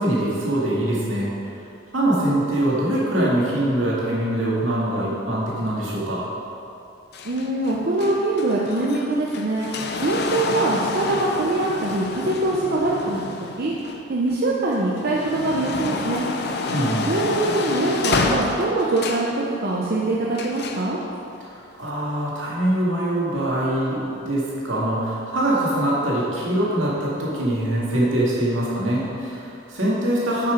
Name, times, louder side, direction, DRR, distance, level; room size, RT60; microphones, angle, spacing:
voice 1, 0.0-1.3 1.9-6.2 16.7-17.1 21.8-30.5, right 1 dB, 85° right, -6 dB, 2.1 m, -23 dB
sound 1, 7.1-14.3 14.8-19.4 20.3-20.9 21.8-21.9, left 3 dB, 55° left, 0.6 m, -29 dB
voice 2, 7.2-9.7 10.0-13.7 14.1-16.3 16.8-21.0, right 2 dB, 55° right, -4 dB, 0.7 m, -23 dB
8.6 x 5.8 x 5.1 m, 2.6 s
head